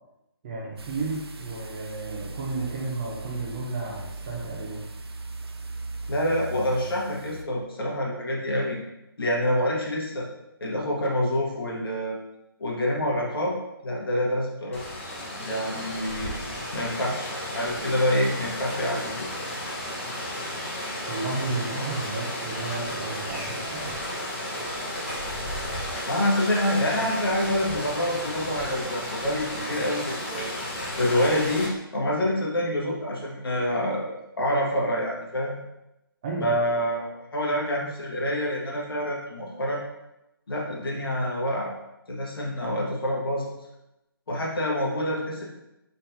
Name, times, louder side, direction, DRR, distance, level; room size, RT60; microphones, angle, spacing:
voice 1, 0.4-4.8 21.1-24.0 36.2-36.5, right 3 dB, 20° right, -3 dB, 0.6 m, -32 dB
sound 1, 0.8-7.4, right 3 dB, 85° right, 0.5 m, -39 dB
voice 2, 6.1-8.8 9.2-10.3 10.6-12.2 12.6-13.5 13.8-14.8 15.3-16.3 16.7-19.1 26.1-30.5 31.0-35.6 36.4-39.8 40.5-41.7 42.1-43.5 44.3-45.4, equal, 65° left, -3 dB, 1.4 m, -27 dB
Rain, 14.7-31.7, left 1 dB, 30° left, 1.0 m, -33 dB
4.1 x 4.1 x 2.7 m, 0.89 s
hypercardioid pair, 165°, 13 cm